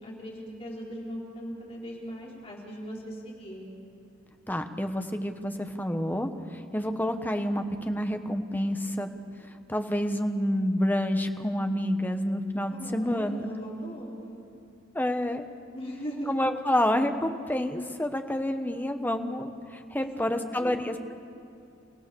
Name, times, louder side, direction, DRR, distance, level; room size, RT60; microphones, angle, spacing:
voice 1, 0.0-3.7 12.7-14.4 15.7-16.3 20.0-20.9, equal, 30° left, -3 dB, 4.7 m, -39 dB
voice 2, 4.5-9.1 9.7-13.5 14.9-15.4 16.3-21.1, left 1 dB, 10° left, 6 dB, 1.2 m, -28 dB
29.5 x 17.0 x 7.1 m, 2.6 s
head